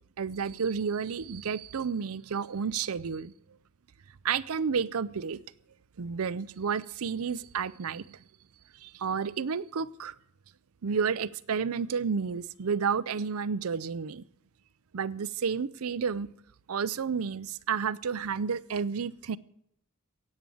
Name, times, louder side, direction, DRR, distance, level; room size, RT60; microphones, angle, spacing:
voice 1, 0.2-3.3 4.2-5.4 6.0-8.2 8.8-10.1 10.8-14.2 14.9-16.3 16.7-19.4, right 6 dB, 65° right, 16 dB, 0.5 m, -31 dB
16.5 x 8.4 x 7.7 m, 0.71 s
head